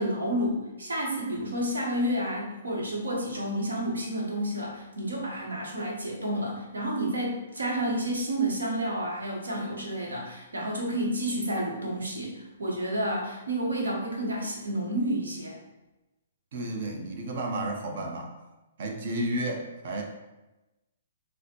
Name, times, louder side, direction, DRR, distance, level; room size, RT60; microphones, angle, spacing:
voice 1, 0.0-15.6, right 1 dB, 85° right, -2 dB, 0.9 m, -30 dB
voice 2, 16.5-18.3 18.8-20.0, right 1 dB, 55° right, 2 dB, 0.6 m, -32 dB
4.0 x 2.1 x 2.8 m, 1.0 s
hypercardioid pair, 125°, 0 cm